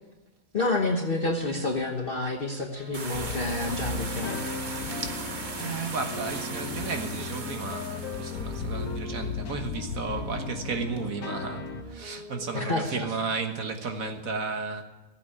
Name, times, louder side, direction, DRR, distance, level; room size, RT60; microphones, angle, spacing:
voice 1, 0.5-4.5 12.5-13.1, left 2 dB, 40° left, 1.3 m, -29 dB
sound 1, 2.7-13.1, right 2 dB, 80° right, 3.4 m, -45 dB
sound 2, 2.9-11.0, right 3 dB, 35° right, 1.1 m, -39 dB
sound 3, 3.1-11.8, left 5 dB, 70° left, 1.6 m, -36 dB
voice 2, 4.9-5.2 5.6-14.8, right 4 dB, 60° right, 1.7 m, -33 dB
15.0 x 8.0 x 9.8 m
omnidirectional pair, 1.7 m